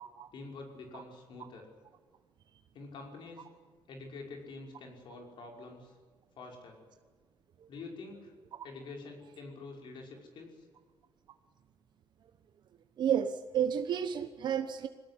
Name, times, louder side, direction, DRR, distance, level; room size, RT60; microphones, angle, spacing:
voice 1, 0.3-1.7 2.7-3.6 3.9-5.9 6.4-6.8 7.7-8.3 8.6-10.7, left 3 dB, 65° left, 1 dB, 5.6 m, -47 dB
voice 2, 13.0-14.9, right 9 dB, 60° right, 8 dB, 1.0 m, -31 dB
22.0 x 18.0 x 9.9 m, 1.5 s
cardioid pair, 145°, 9 cm